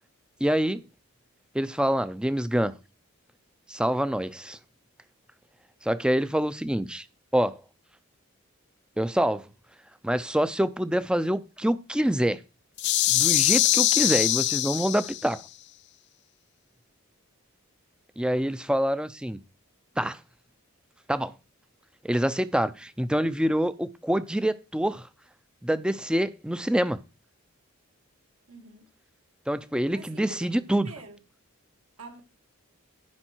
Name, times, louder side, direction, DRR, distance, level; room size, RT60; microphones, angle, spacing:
voice 1, 0.4-0.8 1.5-2.7 3.7-4.6 5.8-7.1 7.3-7.6 9.0-9.5 10.0-12.4 13.1-15.4 18.2-19.4 20.0-20.2 21.1-21.3 22.0-25.1 25.6-27.0 29.5-30.9, equal, 5° right, 0.5 m, -26 dB
sound 1, 12.8-15.3, left 15 dB, 50° left, 0.4 m, -23 dB
voice 2, 28.5-28.9 29.9-31.2 32.0-32.2, right 2 dB, 80° right, 2.7 m, -46 dB
14.0 x 5.5 x 4.5 m
head